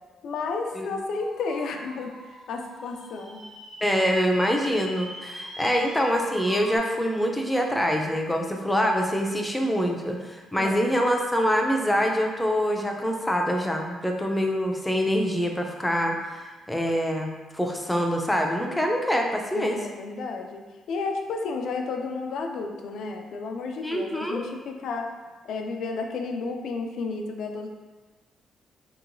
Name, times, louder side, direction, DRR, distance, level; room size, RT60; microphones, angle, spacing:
voice 1, 0.2-3.4 10.6-11.0 19.5-25.1 25.4-27.7, left 4 dB, 70° left, 4 dB, 0.3 m, -32 dB
sound 1, 1.1-6.8, equal, 85° right, 1.2 m, -41 dB
voice 2, 3.8-19.8 23.8-24.4, equal, 10° left, 1 dB, 0.4 m, -25 dB
2.9 x 2.8 x 2.6 m, 1.3 s
cardioid pair, 90°, 0 cm